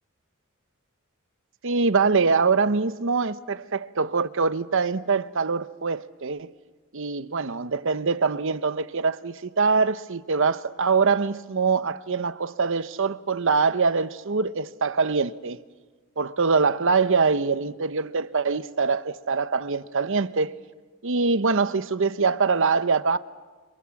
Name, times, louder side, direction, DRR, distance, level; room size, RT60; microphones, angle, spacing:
voice 1, 1.6-6.5 6.9-15.6 16.2-20.6 21.0-23.2, right 4 dB, 60° right, 0.9 m, -24 dB
29.0 x 26.0 x 7.2 m
head